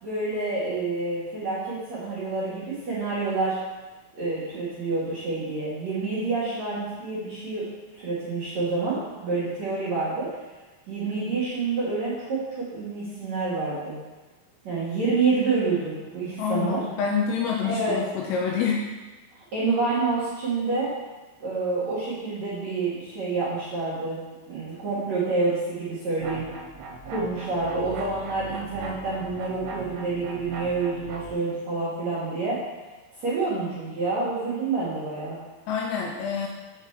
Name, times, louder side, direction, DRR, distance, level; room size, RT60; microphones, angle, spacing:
voice 1, 0.0-3.6 4.1-10.3 10.9-14.0 14.6-16.8 17.6-18.0 19.5-20.9 21.4-24.2 24.5-26.4 27.0-32.6 33.2-35.4, right 3 dB, 55° right, -10 dB, 2.2 m, -28 dB
voice 2, 16.4-18.9 35.7-36.5, left 6 dB, 85° left, -1 dB, 2.6 m, -27 dB
sound 1, 26.2-31.3, right 3 dB, 75° right, 3.4 m, -39 dB
7.6 x 7.2 x 3.3 m, 1.2 s
omnidirectional pair, 5.5 m